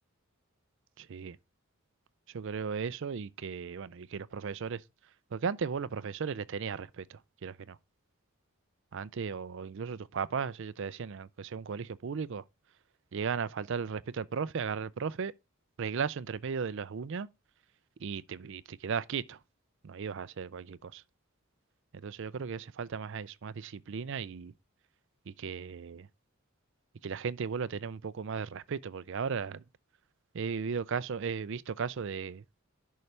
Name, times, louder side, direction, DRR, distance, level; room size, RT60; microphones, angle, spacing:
voice 1, 1.0-1.4 2.3-4.8 5.3-7.8 8.9-12.4 13.1-15.3 15.8-17.3 18.0-19.4 19.8-21.0 21.9-24.5 25.3-26.1 27.0-29.6 30.3-32.4, right 6 dB, 55° right, 0.4 m, -36 dB
11.0 x 5.6 x 3.2 m
head